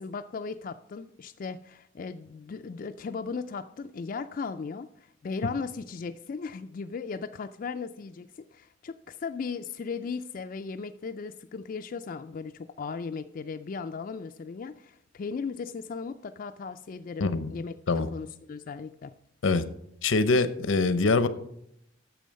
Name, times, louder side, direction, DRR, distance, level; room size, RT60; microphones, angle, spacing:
voice 1, 0.0-17.7 18.1-19.1, left 5 dB, 45° left, 7 dB, 0.3 m, -37 dB
voice 2, 20.0-21.3, left 3 dB, 80° left, 13 dB, 0.7 m, -23 dB
9.1 x 7.0 x 5.2 m, 0.74 s
head